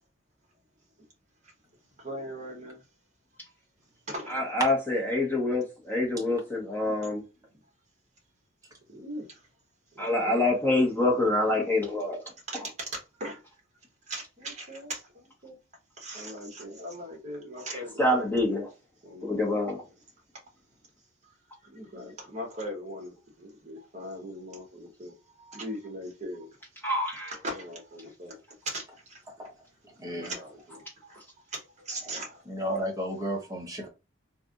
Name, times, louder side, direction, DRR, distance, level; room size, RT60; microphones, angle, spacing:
voice 1, 2.0-2.8 4.1-4.3 8.9-9.3 9.9-10.4 12.5-12.6 13.2-13.4 14.1-15.6 16.0-18.3 19.0-19.4 21.6-26.5 27.1-28.4 28.6-28.8 29.1-29.2 30.1-30.8 31.5-32.4 33.5-33.9, equal, 35° right, 1.2 m, -39 dB
voice 2, 4.3-7.2 10.0-12.2 17.7-18.7 19.2-19.8 26.8-27.3, left 2 dB, 10° left, 1.1 m, -26 dB
voice 3, 30.0-30.3 32.5-33.9, equal, 15° right, 0.9 m, -32 dB
3.3 x 2.5 x 2.5 m
head